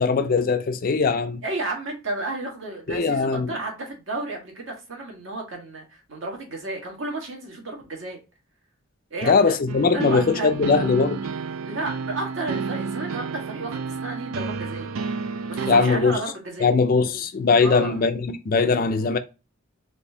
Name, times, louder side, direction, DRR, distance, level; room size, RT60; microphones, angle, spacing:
voice 1, 0.0-1.4 2.9-3.5 9.2-11.2 15.7-16.2 16.6-19.2, left 4 dB, 45° left, 0.4 m, -20 dB
voice 2, 1.4-8.2 9.1-9.6 9.9-10.5 11.6-14.9 15.5-16.7 17.6-18.0, right 2 dB, 65° right, 1.5 m, -32 dB
sound 1, 9.7-15.9, right 5 dB, 85° right, 0.4 m, -30 dB
4.2 x 2.7 x 3.3 m
head